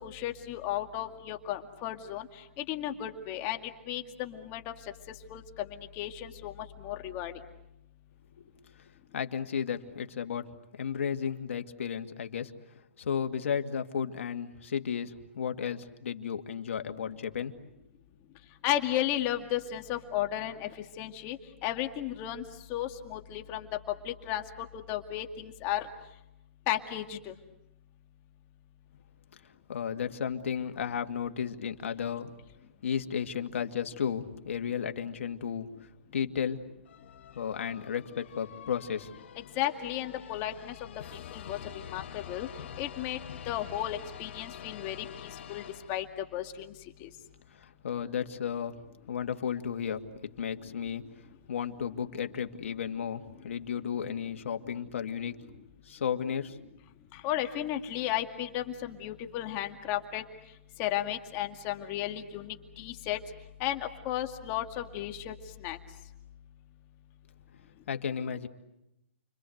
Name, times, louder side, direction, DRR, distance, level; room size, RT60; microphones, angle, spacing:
voice 1, 0.0-2.3 2.7-3.6 3.9-4.7 5.3-5.7 6.0-6.5 6.8-7.3 18.6-20.7 21.0-21.4 21.6-22.4 22.7-23.7 24.0-24.4 24.9-25.8 26.7-27.3 39.6-40.7 41.3-42.5 42.8-43.2 43.5-45.6 45.9-46.1 46.3-46.7 47.0-47.1 57.2-60.2 60.8-63.2 63.6-65.3 65.6-65.8, left 12 dB, 30° left, 5 dB, 2.2 m, -34 dB
voice 2, 9.1-10.4 10.8-12.5 13.0-17.7 29.7-32.3 32.8-35.7 36.1-36.7 37.3-39.1 47.5-48.8 49.1-50.1 50.4-51.0 51.5-55.3 55.9-56.6 67.9-68.5, left 7 dB, 75° left, 6 dB, 2.2 m, -33 dB
sound 1, 36.9-46.4, left 9 dB, 60° left, 2.1 m, -46 dB
30.0 x 24.5 x 7.9 m, 0.88 s
hypercardioid pair, 150°, 7 cm